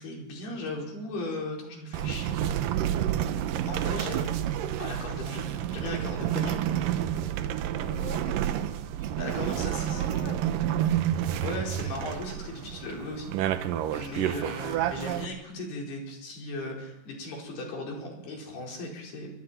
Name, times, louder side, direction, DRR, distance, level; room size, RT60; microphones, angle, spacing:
voice 1, 0.0-2.7 3.7-6.8 9.2-10.0 11.4-19.3, left 2 dB, 75° left, -1 dB, 6.7 m, -37 dB
sound 1, 1.9-15.3, right 11 dB, 70° right, 2.3 m, -29 dB
voice 2, 7.8-8.7 9.5-11.0, left 5 dB, 40° left, 3 dB, 2.1 m, -44 dB
29.0 x 23.5 x 4.5 m, 0.84 s
omnidirectional pair, 4.6 m